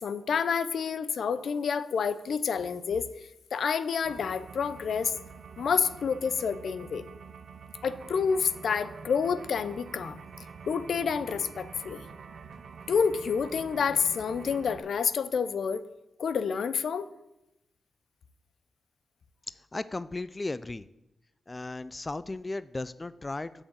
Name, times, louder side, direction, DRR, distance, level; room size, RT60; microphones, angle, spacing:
voice 1, 0.0-3.1 3.5-5.1 5.6-7.0 7.8-10.2 10.7-12.1 12.9-15.8 16.2-17.1, left 6 dB, 75° left, 14 dB, 0.6 m, -28 dB
sound 1, 4.0-14.8, right 5 dB, 70° right, 0.6 m, -46 dB
voice 2, 19.7-20.9 21.5-23.6, left 2 dB, 25° left, 15 dB, 0.4 m, -35 dB
7.7 x 6.3 x 8.1 m, 0.90 s
cardioid pair, 70°, 0 cm